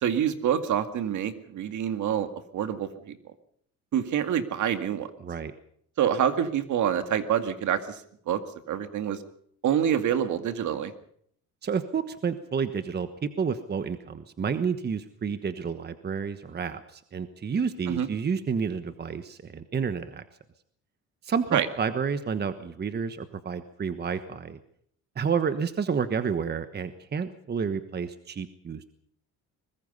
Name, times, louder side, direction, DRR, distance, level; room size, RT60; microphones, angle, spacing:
voice 1, 0.0-3.2 3.9-5.1 6.0-8.4 8.7-9.2 9.6-10.9 17.9-18.1 21.5-21.7, right 9 dB, 60° right, 8 dB, 2.1 m, -26 dB
voice 2, 5.2-5.5 11.6-20.2 21.2-24.6 25.2-29.0, right 6 dB, 30° right, 10 dB, 1.3 m, -30 dB
23.0 x 20.5 x 5.5 m, 0.65 s
cardioid pair, 110°, 33 cm